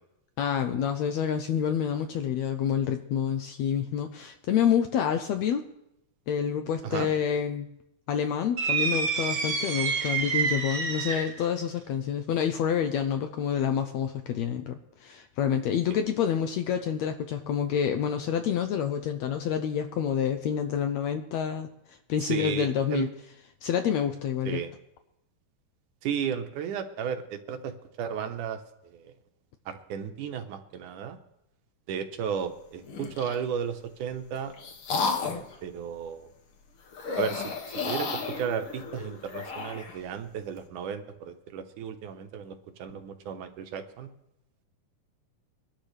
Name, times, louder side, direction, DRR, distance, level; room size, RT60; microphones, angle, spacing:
voice 1, 0.4-5.6 6.3-7.7 8.1-23.1 23.6-24.6, left 8 dB, 75° left, 7 dB, 1.6 m, -28 dB
sound 1, 8.6-11.4, right 5 dB, 50° right, 1.3 m, -28 dB
voice 2, 22.2-23.1 24.5-24.7 26.0-27.7 28.0-29.1 29.7-31.2 31.9-34.5 34.9-36.3 37.2-37.5 37.9-38.1 38.4-44.1, right 8 dB, 75° right, 8 dB, 2.4 m, -34 dB
sound 2, 32.8-33.5 34.1-35.6 36.9-40.0, left 4 dB, 50° left, 2.0 m, -33 dB
23.0 x 12.0 x 3.3 m, 0.84 s
omnidirectional pair, 3.8 m